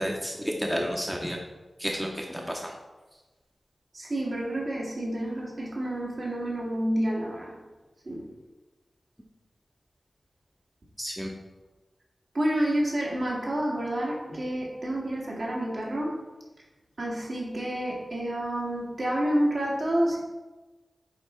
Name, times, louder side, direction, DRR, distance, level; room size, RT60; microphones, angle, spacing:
voice 1, 0.0-1.4 1.8-2.7 11.0-11.3, equal, 5° right, 0 dB, 0.7 m, -31 dB
voice 2, 3.9-7.6 8.1-8.3 12.3-16.2 17.0-20.2, right 1 dB, 60° right, -4 dB, 1.9 m, -29 dB
8.2 x 3.3 x 4.3 m, 1.2 s
wide cardioid pair, 75°, 0 cm